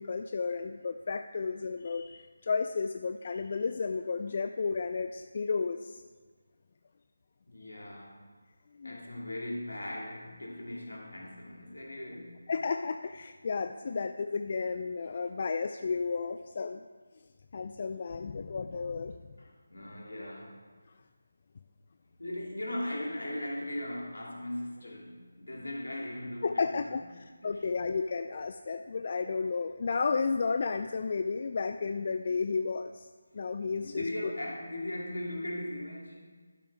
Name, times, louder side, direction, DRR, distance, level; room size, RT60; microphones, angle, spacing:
voice 1, 0.0-6.0 8.8-9.0 12.5-16.8 17.5-19.1 26.4-33.1 33.3-34.0, left 4 dB, 40° left, 7 dB, 0.3 m, -32 dB
voice 2, 7.5-8.2 8.8-12.5 13.8-14.0 19.4-20.6 22.2-27.8 33.8-36.2, left 1 dB, 80° left, -2 dB, 2.5 m, -39 dB
12.0 x 8.5 x 3.4 m, 1.5 s
figure-of-eight pair, 160°, 0 cm